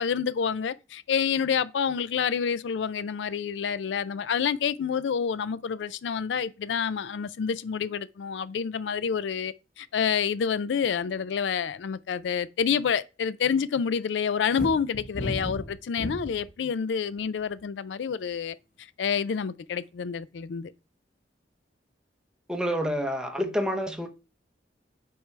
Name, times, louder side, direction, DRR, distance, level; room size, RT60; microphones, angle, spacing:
voice 1, 0.0-18.6 19.0-20.7, left 7 dB, 80° left, 0.4 m, -28 dB
sound 1, 14.6-16.5 17.2-17.6, left 1 dB, 55° left, 1.0 m, -34 dB
voice 2, 22.5-24.1, equal, 5° right, 0.9 m, -28 dB
8.0 x 4.7 x 3.3 m
head